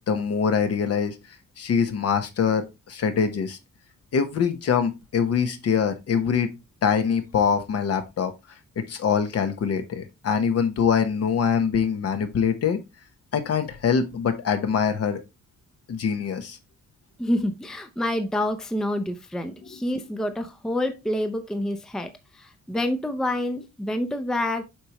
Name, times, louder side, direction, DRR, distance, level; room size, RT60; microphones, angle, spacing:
voice 1, 0.1-1.1 1.6-3.6 4.1-6.5 6.8-8.3 8.8-12.8 13.3-15.2 15.9-16.6, left 6 dB, 55° left, 1.1 m, -24 dB
voice 2, 17.2-24.6, left 1 dB, ahead, 0.5 m, -27 dB
7.6 x 5.0 x 3.0 m
wide cardioid pair, 160°, 30 cm